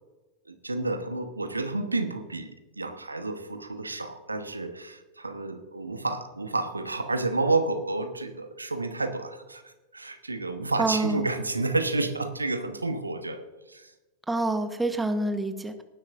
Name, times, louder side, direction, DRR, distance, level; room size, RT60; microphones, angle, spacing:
voice 1, 0.5-13.9, right 2 dB, 80° right, 8 dB, 1.1 m, -30 dB
voice 2, 10.8-11.3 14.3-15.8, right 2 dB, 5° right, 8 dB, 1.1 m, -27 dB
19.0 x 10.5 x 2.6 m, 1.1 s
figure-of-eight pair, 90°, 0 cm